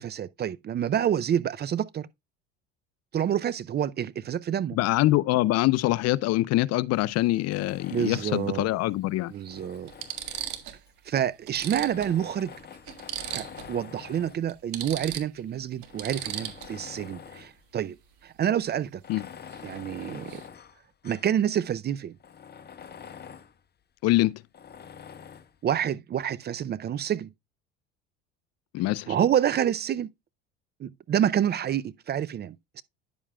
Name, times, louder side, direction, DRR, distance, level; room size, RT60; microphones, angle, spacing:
voice 1, 0.0-2.1 3.1-4.8 7.9-8.7 9.3-9.9 11.1-12.5 13.3-18.0 18.2-19.0 19.6-20.4 21.0-22.2 25.6-27.3 29.1-30.1 30.8-32.8, right 9 dB, 35° right, 0.5 m, -28 dB
voice 2, 4.7-9.3 19.1-19.3 24.0-24.4 28.7-29.1, left 17 dB, 55° left, 0.5 m, -24 dB
sound 1, 6.9-7.1 8.6-8.7 9.4-9.5 9.9-10.8 11.1-11.2 11.5-13.8 14.1-14.2 14.5-16.9 19.5-19.7 20.0-20.5, right 11 dB, 70° right, 1.6 m, -37 dB
Tools, 7.5-8.6 9.3-10.9 11.6-14.5 15.2-15.3 15.8-17.6 18.0-18.1 18.9-21.4 21.8-21.9 22.2-23.6 24.5-25.6, left 7 dB, 30° left, 1.1 m, -46 dB
10.0 x 7.3 x 2.3 m
supercardioid pair, 85°, 31 cm